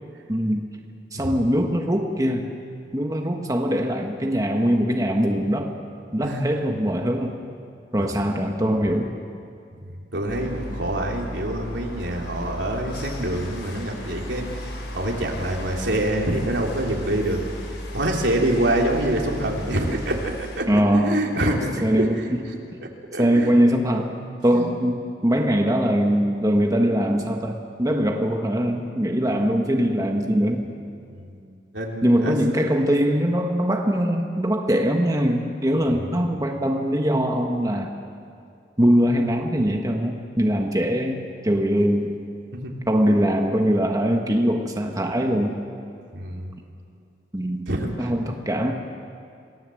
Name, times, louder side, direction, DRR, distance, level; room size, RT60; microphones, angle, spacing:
voice 1, 0.3-0.6 1.1-2.5 2.9-5.7 6.1-7.4 7.9-9.1 20.7-21.2 21.8-22.2 23.2-24.1 24.4-30.7 32.0-37.9 38.8-42.1 42.9-45.6 47.3-47.6 48.0-48.7, equal, 20° right, 2 dB, 1.4 m, -22 dB
voice 2, 10.1-14.5 14.9-17.4 17.9-21.7 22.0-23.5 24.5-24.7 31.1-31.4 31.7-32.4 35.9-36.3 42.5-42.7 46.1-46.5 47.7-48.1, right 1 dB, 85° right, 0 dB, 3.4 m, -26 dB
sound 1, 10.3-20.6, equal, 80° left, 4.6 m, -35 dB
27.5 x 18.0 x 7.8 m, 2.5 s
head